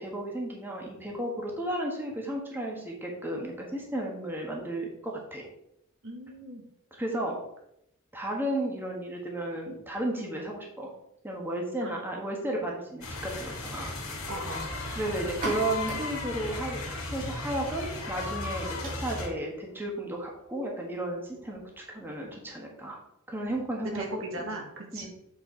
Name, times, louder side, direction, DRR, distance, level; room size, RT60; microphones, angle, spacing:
voice 1, 0.0-5.5 6.9-7.4 8.1-10.9 11.2-13.9 14.9-23.0 23.3-24.1 24.9-25.1, right 1 dB, 10° right, -1 dB, 1.3 m, -33 dB
voice 2, 6.0-6.6 11.8-12.0 14.3-14.7 23.8-25.1, right 1 dB, 65° right, 1 dB, 1.8 m, -37 dB
sound 1, 13.0-19.3, left 3 dB, 75° left, 2.3 m, -36 dB
sound 2, 15.2-22.7, right 2 dB, 40° right, 2.5 m, -44 dB
8.0 x 4.5 x 4.5 m, 0.78 s
head